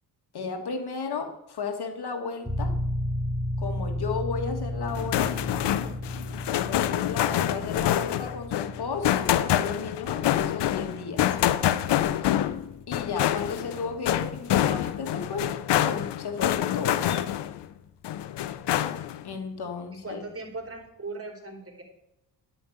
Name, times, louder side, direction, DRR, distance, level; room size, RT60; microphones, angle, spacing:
voice 1, 0.3-2.7 3.6-5.3 6.6-11.3 12.9-15.5 15.8-17.2 19.2-20.2, left 5 dB, 65° left, 5 dB, 2.2 m, -34 dB
sound 1, 2.4-16.9, left 1 dB, 15° right, 5.4 m, -35 dB
sound 2, 4.9-17.6 18.0-19.2, left 12 dB, 85° left, 0.7 m, -26 dB
voice 2, 20.0-21.8, right 3 dB, 35° right, 2 dB, 3.9 m, -39 dB
11.0 x 5.8 x 8.8 m, 0.87 s
cardioid pair, 65°, 41 cm